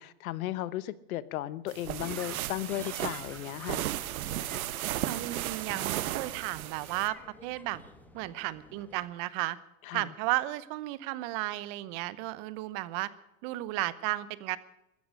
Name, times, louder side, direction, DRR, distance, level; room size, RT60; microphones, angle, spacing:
voice 1, 0.0-3.8 9.9-10.1, left 14 dB, 80° left, 1.1 m, -35 dB
sound 1, 1.7-7.1, right 14 dB, 85° right, 1.1 m, -35 dB
sound 2, 2.0-9.0, left 2 dB, 5° left, 1.4 m, -51 dB
voice 2, 5.1-7.2 7.4-7.8 8.1-9.6 9.9-13.1 13.4-14.6, right 17 dB, 40° right, 0.9 m, -34 dB
15.0 x 13.5 x 6.4 m
supercardioid pair, 150°, 41 cm